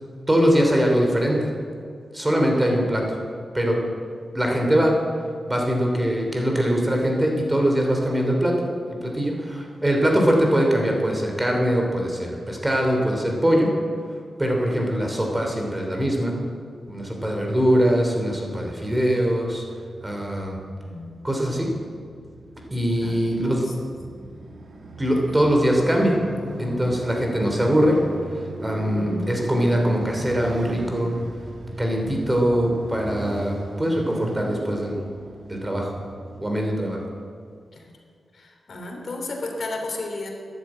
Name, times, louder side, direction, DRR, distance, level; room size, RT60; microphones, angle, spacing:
voice 1, 0.3-1.5 2.1-3.0 3.5-3.8 4.3-4.9 5.5-13.7 14.4-16.4 16.9-19.6 20.0-20.6 21.2-21.7 22.7-23.7 25.0-26.2 26.6-28.0 28.6-31.1 31.8-34.9 35.5-35.9 36.4-37.0, equal, 15° right, 1 dB, 3.2 m, -22 dB
Motorcycle, 19.5-37.4, right 2 dB, 65° right, 1.7 m, -37 dB
voice 2, 20.8-21.1 23.0-23.9 25.3-25.4 37.7-37.8 38.3-40.3, left 2 dB, 60° left, 1 dB, 3.0 m, -34 dB
12.0 x 11.0 x 8.9 m, 2.2 s
wide cardioid pair, 95°, 0 cm